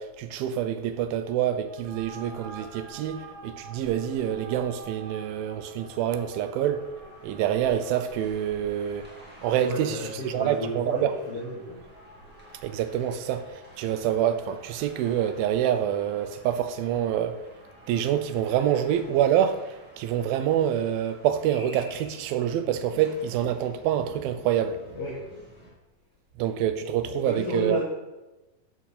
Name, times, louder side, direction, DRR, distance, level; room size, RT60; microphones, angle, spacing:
voice 1, 0.0-6.8 7.2-9.1 9.4-10.0 10.2-11.1 12.6-17.4 17.9-24.8 26.4-27.8, right 10 dB, 90° right, 2.4 m, -26 dB
sound 1, 1.6-19.5, right 3 dB, 50° right, 3.1 m, -50 dB
sound 2, 6.7-25.7, equal, 5° right, 0.7 m, -51 dB
voice 2, 9.7-11.8 24.9-25.2 27.1-27.8, left 1 dB, 70° left, 1.4 m, -32 dB
12.5 x 4.6 x 4.1 m
omnidirectional pair, 4.1 m